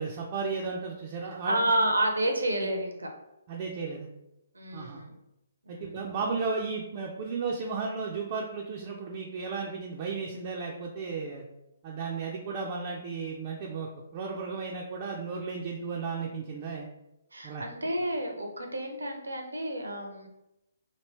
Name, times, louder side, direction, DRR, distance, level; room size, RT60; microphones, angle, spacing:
voice 1, 0.0-1.6 3.5-4.1 4.7-5.0 5.7-11.4 11.8-16.9 17.4-17.6, right 4 dB, 35° right, -2 dB, 0.4 m, -34 dB
voice 2, 1.4-3.1 4.5-5.1 5.6-6.0 17.3-20.3, right 1 dB, 75° right, 3 dB, 0.7 m, -30 dB
2.9 x 2.8 x 3.0 m, 0.88 s
figure-of-eight pair, 130°, 0 cm